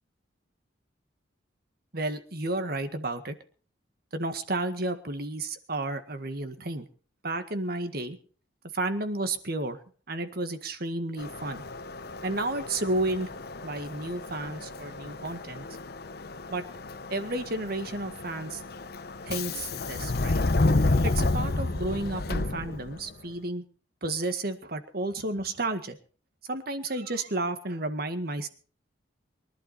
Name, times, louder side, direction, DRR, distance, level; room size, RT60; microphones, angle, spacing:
voice 1, 1.9-3.4 4.1-6.9 7.2-8.2 8.7-9.8 10.1-11.6 12.2-13.3 13.6-15.7 16.5-16.6 17.1-18.6 19.2-20.4 21.0-23.6 24.0-26.0 26.5-28.5, right 2 dB, 55° right, 9 dB, 1.8 m, -32 dB
Subway metro underground, 11.2-23.1, left 2 dB, 55° left, 0.9 m, -31 dB
23.5 x 11.5 x 4.3 m, 0.40 s
head